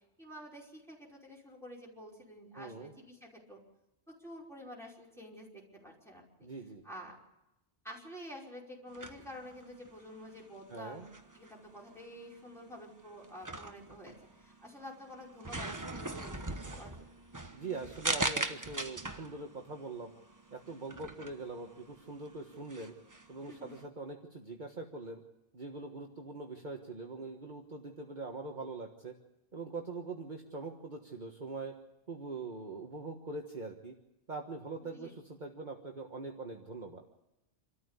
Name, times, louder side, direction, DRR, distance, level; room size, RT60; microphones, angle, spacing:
voice 1, 0.2-3.6 4.1-6.5 6.8-7.2 7.8-11.1 11.3-17.1 23.5-23.7 34.9-35.1, equal, ahead, -3 dB, 5.2 m, -49 dB
voice 2, 2.5-2.9 6.4-6.8 10.7-11.1 17.5-20.1 20.5-22.9 23.3-25.2 25.5-29.1 29.5-31.7 32.1-33.9 34.3-37.0, right 3 dB, 40° right, 1 dB, 1.7 m, -43 dB
sound 1, 8.9-23.9, right 2 dB, 15° right, 1.1 m, -41 dB
27.0 x 14.0 x 8.3 m, 0.92 s
omnidirectional pair, 1.2 m